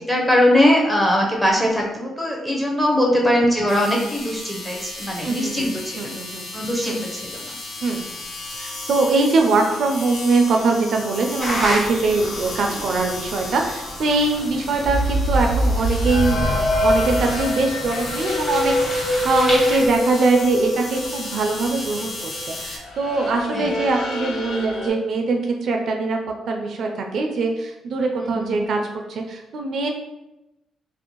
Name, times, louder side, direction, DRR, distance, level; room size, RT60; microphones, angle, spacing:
voice 1, 0.0-6.1 6.5-7.5 23.5-23.7 28.1-28.7, left 1 dB, 5° left, -1 dB, 0.6 m, -21 dB
sound 1, 3.7-22.8, left 2 dB, 60° left, 0.5 m, -35 dB
voice 2, 5.2-6.5 6.8-7.0 7.8-8.1 8.6-26.2 26.5-29.9, right 3 dB, 60° right, 3 dB, 0.3 m, -22 dB
sound 2, 11.4-19.9, left 1 dB, 40° left, 1.1 m, -32 dB
sound 3, 14.8-21.5 21.7-22.5 22.8-24.9, equal, 80° left, 1.1 m, -24 dB
2.5 x 2.0 x 2.9 m, 0.94 s
cardioid pair, 90°, 0 cm